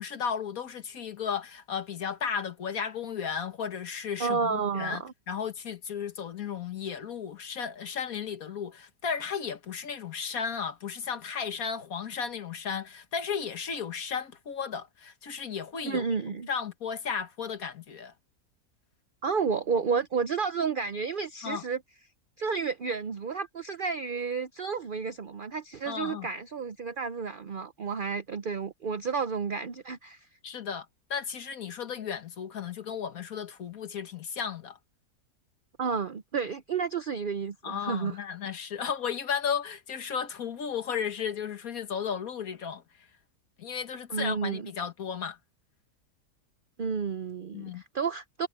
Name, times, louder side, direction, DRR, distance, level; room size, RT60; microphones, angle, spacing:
voice 1, 0.0-5.0 5.3-16.0 16.5-18.1 21.4-21.6 25.9-26.3 30.4-34.8 37.6-42.8 43.6-45.4 47.5-47.8, left 7 dB, 65° left, 1.8 m, -34 dB
voice 2, 4.2-5.1 15.9-16.5 19.2-21.8 22.4-30.2 35.8-38.2 44.1-44.7 46.8-48.5, right 5 dB, 55° right, 0.6 m, -31 dB
omnidirectional pair, 1.7 m